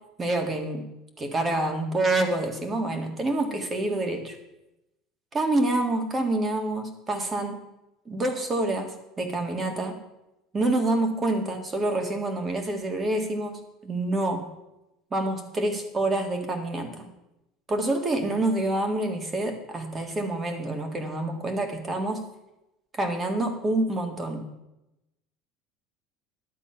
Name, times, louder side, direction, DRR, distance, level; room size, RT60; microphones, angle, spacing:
voice 1, 0.2-0.8 1.2-4.4 5.3-7.6 8.1-10.0 10.5-14.4 15.1-17.1 17.7-22.2 22.9-24.4, right 2 dB, 20° right, 5 dB, 1.7 m, -27 dB
11.0 x 8.1 x 5.7 m, 0.92 s
supercardioid pair, 135°, 0 cm